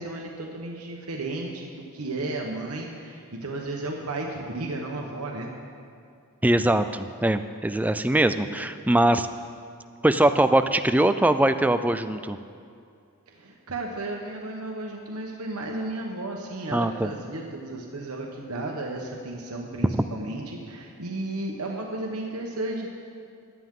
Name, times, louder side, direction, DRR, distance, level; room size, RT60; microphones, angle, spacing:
voice 1, 0.0-5.5 13.3-22.9, right 2 dB, 90° right, 0 dB, 1.2 m, -33 dB
voice 2, 6.4-9.3 10.0-12.4 16.7-17.1, right 1 dB, 5° right, 10 dB, 0.3 m, -22 dB
17.0 x 11.0 x 3.8 m, 2.3 s
head